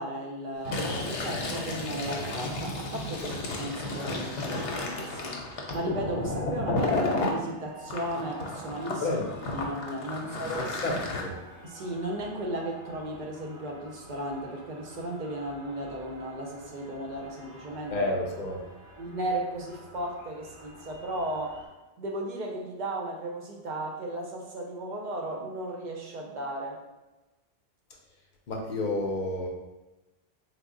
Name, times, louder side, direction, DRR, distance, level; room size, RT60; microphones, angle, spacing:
voice 1, 0.0-9.0 9.5-10.7 11.6-17.9 19.0-21.6 22.0-26.8, right 1 dB, 55° right, 0 dB, 0.5 m, -35 dB
Fill (with liquid), 0.6-7.4 7.9-11.2, left 2 dB, 85° left, 0.9 m, -32 dB
sound 1, 2.7-21.7, right 1 dB, 5° right, 0.9 m, -50 dB
voice 2, 10.5-11.4 17.9-18.6 28.5-29.5, left 2 dB, 60° left, 1 dB, 0.5 m, -30 dB
3.4 x 2.0 x 3.6 m, 1.1 s
omnidirectional pair, 1.2 m